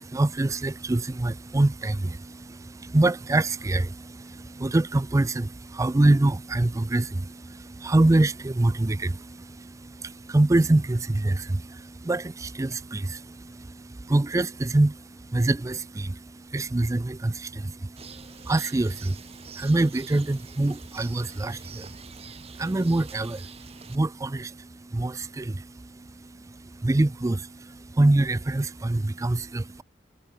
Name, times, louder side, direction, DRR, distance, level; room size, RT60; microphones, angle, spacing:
voice 1, 0.0-29.8, right 2 dB, 20° right, 0.4 m, -25 dB
Bird, 18.0-24.0, right 5 dB, 35° right, 2.3 m, -46 dB
head